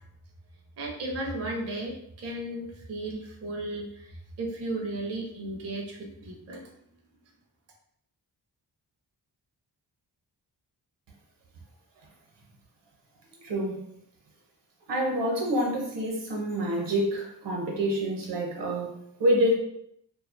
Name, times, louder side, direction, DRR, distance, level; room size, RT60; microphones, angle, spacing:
voice 1, 0.8-6.6, right 1 dB, 40° right, -1 dB, 0.5 m, -35 dB
voice 2, 13.4-13.8 14.9-18.9 19.2-19.6, equal, 85° right, -1 dB, 0.8 m, -27 dB
2.4 x 2.2 x 2.4 m, 0.73 s
wide cardioid pair, 125°, 42 cm